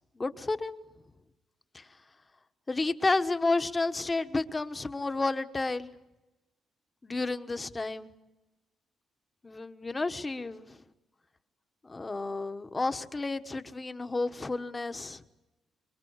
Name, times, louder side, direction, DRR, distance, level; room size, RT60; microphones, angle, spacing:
voice 1, 0.2-0.8 1.7-1.9 2.7-6.0 7.0-8.1 9.4-10.8 11.8-15.2, left 3 dB, 25° left, 1.3 m, -31 dB
24.5 x 23.5 x 8.1 m
cardioid pair, 90°, 0 cm